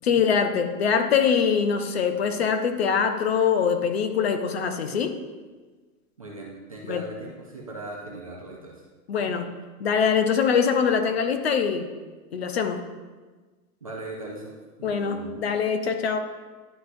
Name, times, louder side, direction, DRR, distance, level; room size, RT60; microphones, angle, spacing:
voice 1, 0.0-5.1 6.9-7.0 9.1-9.4 9.8-11.9 12.3-12.8 14.8-16.2, left 6 dB, 45° left, 7 dB, 0.6 m, -23 dB
voice 2, 6.2-8.9 9.2-9.3 13.8-14.5 14.8-15.3, right 2 dB, 25° right, -3 dB, 0.4 m, -39 dB
11.0 x 5.6 x 2.6 m, 1.3 s
supercardioid pair, 175°, 44 cm